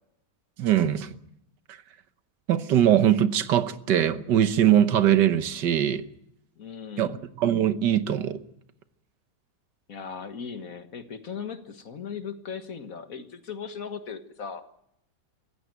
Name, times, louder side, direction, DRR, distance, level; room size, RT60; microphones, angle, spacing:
voice 1, 0.6-1.2 2.5-6.0 7.0-8.4, right 10 dB, 90° right, 1.7 m, -22 dB
voice 2, 6.6-7.2 9.9-14.7, left 6 dB, 55° left, 1.8 m, -38 dB
24.0 x 15.0 x 9.2 m
omnidirectional pair, 1.8 m